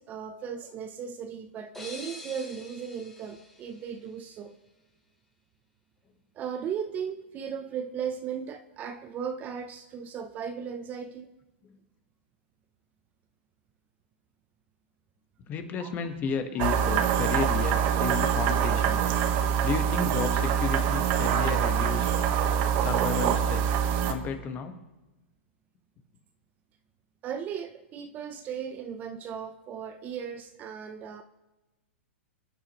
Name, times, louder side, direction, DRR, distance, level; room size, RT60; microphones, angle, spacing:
voice 1, 0.0-4.5 6.3-11.3 15.8-15.9 27.2-31.2, right 7 dB, 25° right, 8 dB, 0.8 m, -36 dB
sound 1, 1.7-4.5, left 2 dB, 5° left, 3.0 m, -46 dB
voice 2, 15.5-19.0 19.6-22.1 22.8-23.8 24.1-24.8, left 6 dB, 25° left, 7 dB, 1.6 m, -32 dB
sound 2, 16.6-24.1, right 8 dB, 40° right, 1.4 m, -25 dB
27.5 x 9.9 x 3.2 m, 1.1 s
hypercardioid pair, 140°, 7 cm